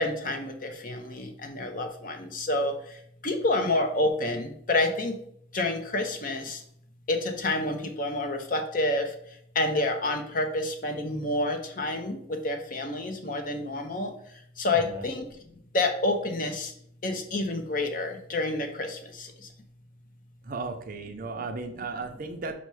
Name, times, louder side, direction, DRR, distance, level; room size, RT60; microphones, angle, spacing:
voice 1, 0.0-2.7 3.2-5.1 5.5-6.6 7.1-9.1 9.6-14.1 14.6-15.3 15.7-16.7 17.0-19.0, left 2 dB, 45° left, 4 dB, 0.6 m, -28 dB
voice 2, 20.5-22.5, right 3 dB, 45° right, 5 dB, 0.5 m, -35 dB
5.4 x 2.1 x 4.6 m, 0.69 s
head